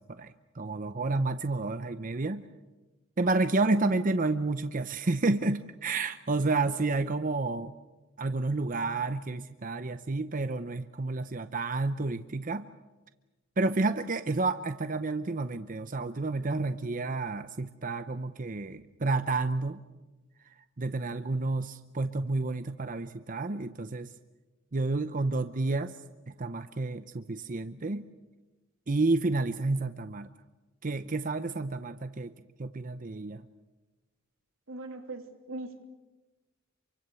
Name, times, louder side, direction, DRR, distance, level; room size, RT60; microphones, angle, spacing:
voice 1, 0.1-2.4 3.2-7.7 8.2-12.6 13.6-19.8 20.8-24.1 24.7-25.9 26.4-28.0 28.9-30.3 30.8-32.3 32.6-33.4, right 3 dB, 40° right, 10 dB, 0.8 m, -30 dB
voice 2, 34.7-35.8, right 2 dB, 85° right, 5 dB, 3.0 m, -40 dB
27.5 x 24.5 x 7.0 m, 1.1 s
head